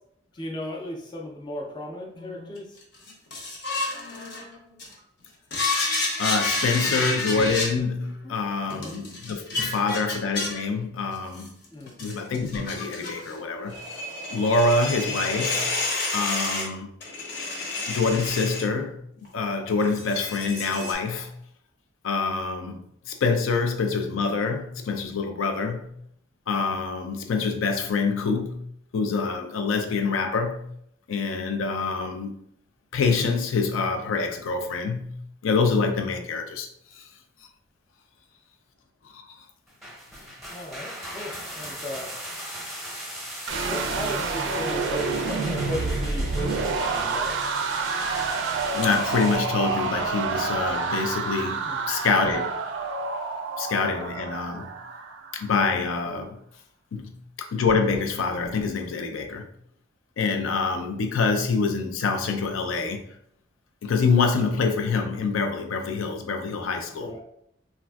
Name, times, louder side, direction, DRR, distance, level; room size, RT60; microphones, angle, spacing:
voice 1, 0.3-2.8 6.8-7.1 8.2-8.4 8.6-9.1 11.7-12.1 40.5-42.2 43.7-47.5 51.6-51.8 66.9-67.2, left 1 dB, 20° left, 0.4 m, -36 dB
sound 1, 2.2-4.9 5.5-7.8 8.7-10.6 11.4-13.3 13.6-16.7 17.0-18.6 19.3-19.5 19.8-20.9, left 2 dB, 55° left, 0.7 m, -29 dB
voice 2, 6.2-11.5 12.0-13.8 14.3-15.7 16.1-16.9 17.9-21.4 22.0-26.0 26.5-28.7 28.9-30.7 31.1-32.4 32.9-36.7 36.9-37.1 39.0-39.5 48.7-52.5 53.6-54.7 55.3-56.4 56.9-59.5 60.2-63.0 63.8-67.1, left 4 dB, 85° left, 0.4 m, -26 dB
sound 2, 39.7-49.4, equal, ahead, 0.7 m, -39 dB
sound 3, 43.5-55.5, right 4 dB, 65° right, 0.4 m, -28 dB
3.4 x 2.4 x 2.3 m
head